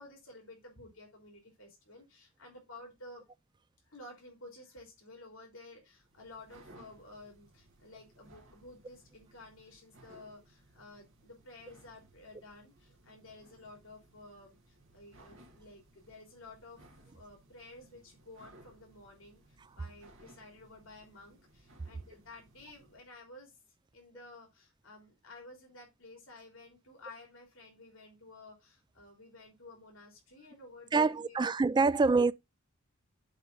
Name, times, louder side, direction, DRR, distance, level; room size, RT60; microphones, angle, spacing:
voice 1, 0.0-3.2 3.8-16.8 17.1-23.5 23.9-31.5 31.9-32.0, left 2 dB, 65° left, 3.3 m, -53 dB
sound 1, 5.9-23.1, right 1 dB, 65° right, 2.3 m, -61 dB
voice 2, 30.9-32.3, right 4 dB, 20° right, 0.3 m, -25 dB
7.6 x 3.8 x 5.5 m
head